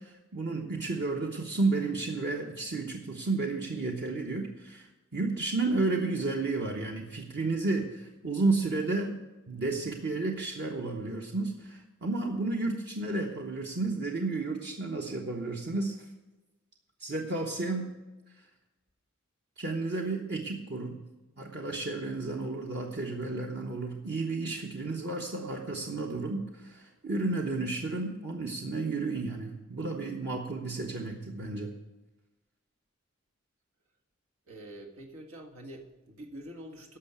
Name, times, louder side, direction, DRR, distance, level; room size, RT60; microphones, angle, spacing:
voice 1, 0.0-9.2 9.5-16.0 17.0-17.9 19.6-21.0 21.4-31.7, right 3 dB, 55° right, 1 dB, 1.1 m, -32 dB
voice 2, 34.5-37.0, right 1 dB, 90° right, 1 dB, 1.8 m, -46 dB
11.5 x 6.6 x 8.2 m, 1.1 s
head